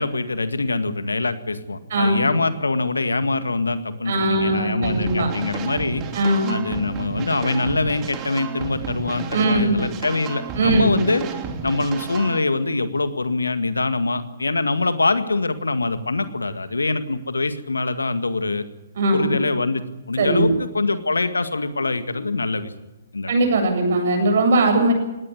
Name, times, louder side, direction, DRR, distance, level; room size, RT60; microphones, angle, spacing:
voice 1, 0.0-6.0 6.5-11.2 11.6-18.6 19.1-22.7 23.1-23.3, left 3 dB, 85° left, 10 dB, 1.9 m, -24 dB
voice 2, 1.9-2.3 4.1-5.3 6.1-6.6 9.3-9.8 10.6-10.9 19.0-19.3 20.2-20.5 23.3-24.9, right 2 dB, 60° right, 5 dB, 7.9 m, -20 dB
sound 1, 4.8-12.4, right 5 dB, 25° right, 2.9 m, -32 dB
19.5 x 17.5 x 9.8 m, 1.0 s
figure-of-eight pair, 130°, 0 cm